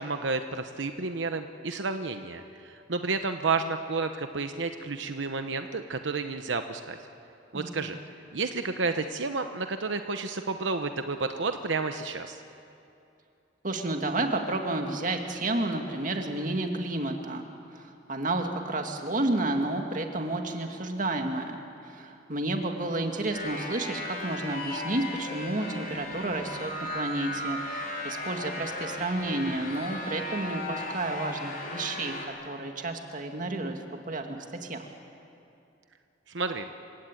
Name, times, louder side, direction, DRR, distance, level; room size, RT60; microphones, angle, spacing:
voice 1, 0.0-7.0 7.5-8.0 8.3-12.4 36.3-36.7, right 4 dB, 85° right, 7 dB, 1.0 m, -31 dB
voice 2, 7.5-8.0 13.6-34.9, right 2 dB, 45° right, 4 dB, 2.1 m, -31 dB
sound 1, 23.3-32.3, left 1 dB, 50° left, 4.2 m, -36 dB
28.0 x 16.5 x 9.1 m, 2.7 s
head